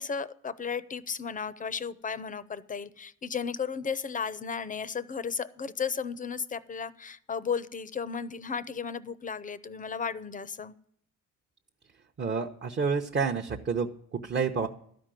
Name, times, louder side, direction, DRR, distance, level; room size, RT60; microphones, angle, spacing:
voice 1, 0.0-10.7, left 6 dB, 25° left, 0.6 m, -34 dB
voice 2, 12.2-14.7, right 5 dB, 40° right, 0.8 m, -29 dB
12.5 x 5.1 x 9.0 m
cardioid pair, 90°, 30 cm